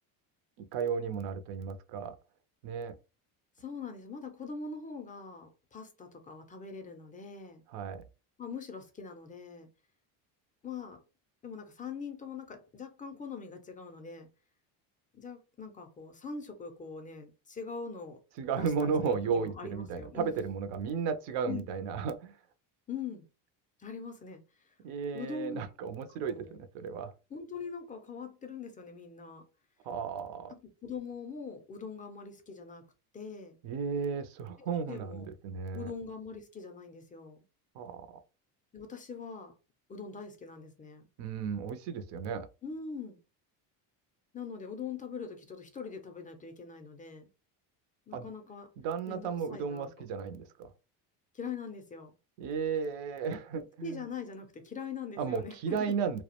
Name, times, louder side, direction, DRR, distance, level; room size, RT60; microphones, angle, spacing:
voice 1, 0.6-2.2 2.6-3.0 7.7-8.1 18.4-22.4 24.8-27.1 29.8-30.5 33.6-35.9 37.7-38.2 41.2-42.5 48.1-48.3 48.8-50.7 52.4-54.1 55.2-56.2, right 6 dB, 60° right, 0.5 m, -34 dB
voice 2, 3.6-7.6 8.4-9.7 10.6-11.0 11.4-14.3 15.1-18.2 18.6-20.4 21.5-21.7 22.9-23.3 23.8-24.4 24.7-24.8 25.1-25.6 26.2-26.6 27.3-29.4 30.5-32.9 33.1-33.6 34.9-35.3 35.7-37.4 38.7-39.5 39.9-41.1 42.6-43.2 44.3-47.3 48.1-48.7 49.1-49.9 51.3-52.1 53.8-56.0, left 5 dB, 20° left, 0.3 m, -42 dB
2.3 x 2.1 x 2.8 m
supercardioid pair, 105°, 47 cm